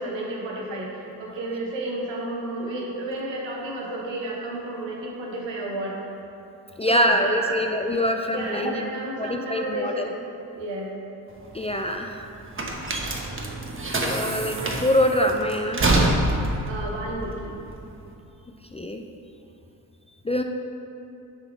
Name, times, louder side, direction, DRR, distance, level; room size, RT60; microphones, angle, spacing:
voice 1, 0.0-6.0 6.9-8.0 8.3-10.2 10.5-10.9 16.7-17.5, right 1 dB, 75° right, -2 dB, 1.3 m, -31 dB
voice 2, 6.8-8.9 9.2-10.1 11.5-12.3 14.0-15.8 18.7-19.0 20.2-20.4, equal, 15° left, 3 dB, 0.4 m, -24 dB
sound 1, 11.3-18.1, right 2 dB, 30° right, 1.0 m, -26 dB
6.8 x 4.1 x 4.6 m, 2.7 s
supercardioid pair, 45°, 44 cm